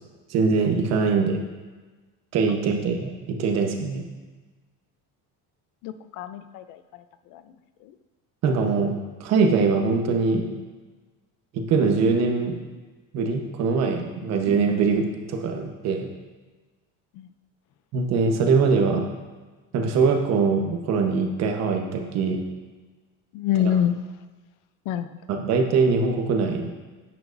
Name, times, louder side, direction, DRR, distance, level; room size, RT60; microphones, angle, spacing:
voice 1, 0.3-1.4 2.3-4.0 8.4-8.9 9.2-10.5 11.5-12.6 13.1-16.1 17.9-19.0 19.7-22.4 25.3-26.7, right 4 dB, 50° right, 3 dB, 1.1 m, -22 dB
voice 2, 5.8-7.0 7.3-7.4 7.8-7.9 14.2-14.3 17.1-17.3 23.3-24.0 24.9-25.2, left 9 dB, 65° left, 11 dB, 0.6 m, -27 dB
11.0 x 9.0 x 2.6 m, 1.3 s
cardioid pair, 175°, 34 cm